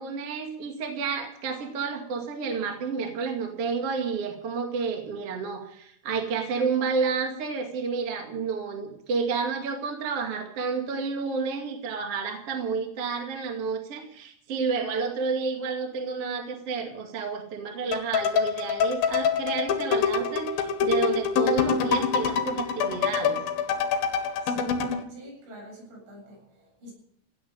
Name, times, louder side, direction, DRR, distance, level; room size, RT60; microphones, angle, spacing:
voice 1, 0.0-23.4, right 5 dB, 40° right, 2 dB, 2.3 m, -30 dB
sound 1, 17.9-25.0, left 6 dB, 60° left, 3.0 m, -25 dB
voice 2, 24.4-24.8 25.1-26.9, equal, 70° right, -1 dB, 10.5 m, -46 dB
17.5 x 9.3 x 8.8 m, 0.68 s
omnidirectional pair, 5.7 m